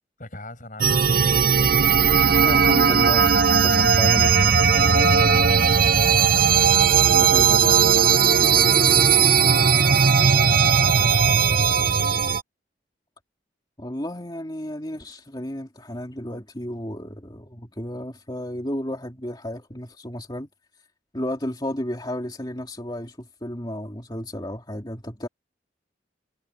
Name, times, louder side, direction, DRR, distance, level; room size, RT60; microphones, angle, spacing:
voice 1, 0.2-1.2 4.8-5.8 9.1-11.5, left 1 dB, 45° left, 6.1 m, -41 dB
sound 1, 0.8-12.4, right 6 dB, 50° right, 0.9 m, -17 dB
voice 2, 2.4-4.3 7.1-7.8 13.8-20.5 21.1-25.3, left 1 dB, 25° left, 2.8 m, -32 dB
head